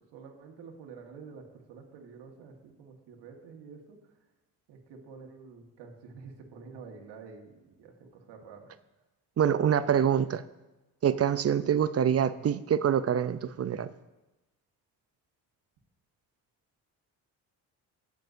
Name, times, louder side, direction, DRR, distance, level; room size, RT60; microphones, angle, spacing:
voice 1, 0.1-4.0 4.7-8.7, right 5 dB, 75° right, 2 dB, 1.6 m, -48 dB
voice 2, 9.4-10.4 11.0-13.9, right 8 dB, 35° right, 14 dB, 0.5 m, -25 dB
18.5 x 6.6 x 2.7 m, 1.1 s
supercardioid pair, 55°, 42 cm